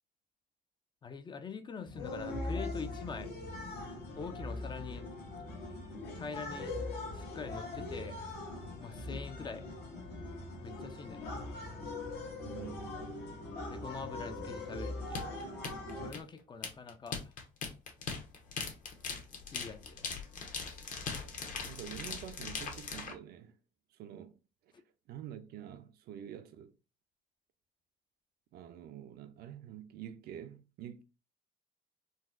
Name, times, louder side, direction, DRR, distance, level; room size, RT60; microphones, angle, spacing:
voice 1, 1.0-3.3 4.2-5.1 6.1-6.8 7.1-8.2 8.8-9.7 10.6-11.3 13.7-15.3 16.0-17.3 19.5-20.1, left 5 dB, 25° left, 0.4 m, -44 dB
sound 1, 1.8-16.1, left 2 dB, 75° left, 1.1 m, -41 dB
voice 2, 12.4-13.4 21.6-23.5 23.9-24.4 25.1-26.7 28.5-31.0, right 10 dB, 70° right, 0.5 m, -47 dB
sound 2, 15.1-23.1, left 5 dB, 50° left, 0.9 m, -40 dB
3.9 x 2.1 x 2.5 m
cardioid pair, 110°, 17 cm